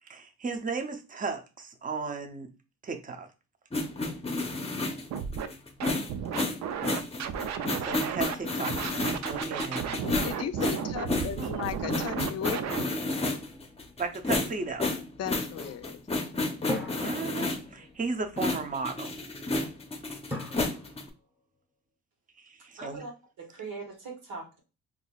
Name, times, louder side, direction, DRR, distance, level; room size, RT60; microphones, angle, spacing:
voice 1, 0.1-2.5 2.8-3.3 7.8-10.0 11.1-11.5 14.0-14.9 17.0-19.2 22.4-23.0, right 4 dB, 25° right, 6 dB, 0.7 m, -35 dB
sound 1, 3.7-17.7 18.4-21.1, left 2 dB, 20° left, 0.7 m, -31 dB
Scratching (performance technique), 5.1-5.5 5.8-8.3 8.6-12.8, right 7 dB, 65° right, 0.5 m, -33 dB
voice 2, 10.2-12.6 15.2-16.0, left 9 dB, 55° left, 10 dB, 0.5 m, -36 dB
sound 2, 13.0-14.6 16.7-18.1 20.3-21.4, left 1 dB, 5° right, 1.0 m, -40 dB
voice 3, 22.8-23.1 23.4-24.6, right 4 dB, 85° right, 1 dB, 1.6 m, -40 dB
3.9 x 2.8 x 2.3 m, 0.30 s
cardioid pair, 90°, 30 cm